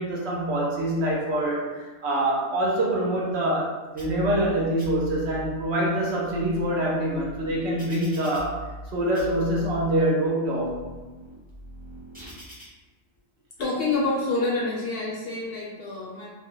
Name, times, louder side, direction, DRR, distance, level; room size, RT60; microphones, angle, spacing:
voice 1, 0.0-8.6 8.9-11.0, right 1 dB, 65° right, -3 dB, 0.8 m, -25 dB
sound 1, 4.0-4.5 4.8-5.5 6.1-8.9 9.1-9.9 10.4-12.6, right 1 dB, 10° right, 0.8 m, -42 dB
voice 2, 13.6-16.3, left 3 dB, 60° left, -4 dB, 0.7 m, -27 dB
2.4 x 2.1 x 3.7 m, 1.3 s
omnidirectional pair, 1.3 m